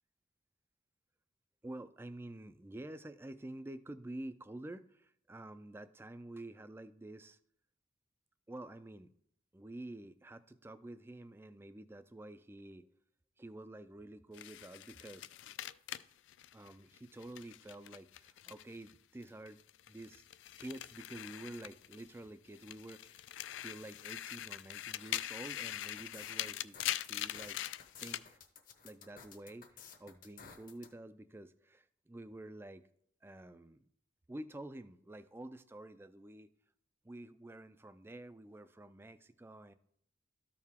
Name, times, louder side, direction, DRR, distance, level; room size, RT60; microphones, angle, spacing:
voice 1, 1.6-7.4 8.5-9.1 9.5-12.9 13.4-15.3 16.5-19.6 19.9-20.3 20.6-27.6 28.0-28.4 28.8-32.8 33.2-33.9 34.3-36.5 37.0-39.7, right 1 dB, 10° right, 13 dB, 0.3 m, -49 dB
sound 1, 14.3-18.9 19.2-22.2 22.5-28.3, left 13 dB, 75° left, 0.3 m, -43 dB
sound 2, 25.8-30.9, left 6 dB, 45° left, 0.9 m, -55 dB
13.0 x 4.6 x 3.6 m, 0.69 s
head